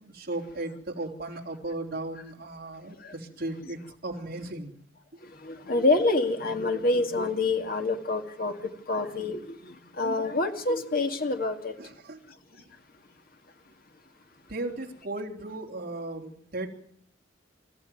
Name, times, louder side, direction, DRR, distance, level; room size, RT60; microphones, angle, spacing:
voice 1, 0.0-3.8 4.0-4.7 11.8-12.2 14.5-16.7, right 2 dB, 55° right, 3.6 m, -36 dB
voice 2, 5.4-11.7, left 2 dB, 55° left, 2.1 m, -27 dB
26.5 x 14.0 x 9.4 m
head